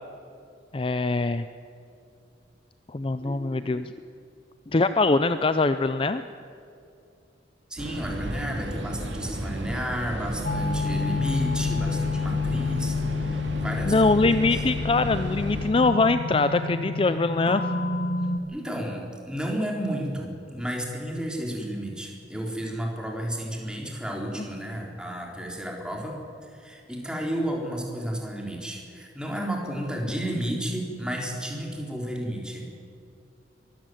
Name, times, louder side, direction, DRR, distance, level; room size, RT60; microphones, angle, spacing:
voice 1, 0.7-1.5 2.9-3.9 4.7-6.2 13.9-17.6, left 3 dB, 30° left, 11 dB, 0.5 m, -23 dB
voice 2, 3.2-3.6 7.7-13.9 14.2-14.6 18.5-32.7, equal, 5° right, 0 dB, 3.7 m, -32 dB
sound 1, 7.8-15.7, right 1 dB, 85° right, 2.5 m, -34 dB
sound 2, 10.4-18.4, left 4 dB, 60° left, 1.8 m, -29 dB
23.0 x 14.0 x 9.2 m, 2.5 s
head